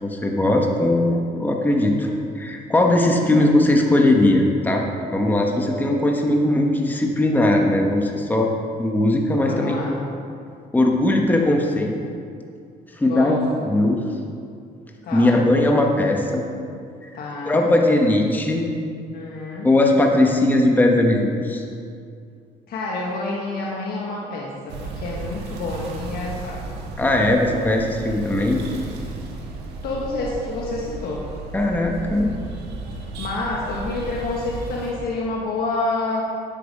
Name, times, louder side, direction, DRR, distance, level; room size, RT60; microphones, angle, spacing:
voice 1, 0.0-2.1 2.3-4.9 5.1-8.5 8.8-9.8 10.7-12.0 13.0-13.4 13.7-14.0 15.1-16.4 17.0-17.1 17.5-18.6 19.6-21.6 27.0-28.6 31.5-32.3, left 1 dB, 10° left, 1 dB, 1.2 m, -19 dB
voice 2, 9.4-10.0 13.1-13.8 15.0-15.5 17.1-17.7 19.1-19.7 22.7-26.8 29.8-31.2 33.1-36.3, left 2 dB, 65° left, -3 dB, 1.4 m, -28 dB
sound 1, 24.7-34.9, right 3 dB, 85° right, 1.5 m, -34 dB
9.3 x 8.8 x 5.4 m, 2.4 s
cardioid pair, 110°, 17 cm